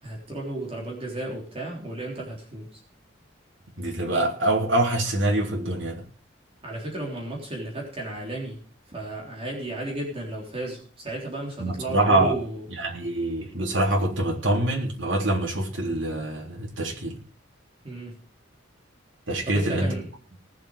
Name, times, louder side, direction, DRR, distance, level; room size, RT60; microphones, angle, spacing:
voice 1, 0.0-2.8 6.6-12.7 17.8-18.2 19.4-20.1, right 1 dB, 30° right, 3.6 m, -34 dB
voice 2, 3.8-6.0 11.6-12.3 12.8-17.2 19.3-19.9, right 1 dB, 70° right, 3.7 m, -25 dB
19.5 x 7.5 x 5.0 m
head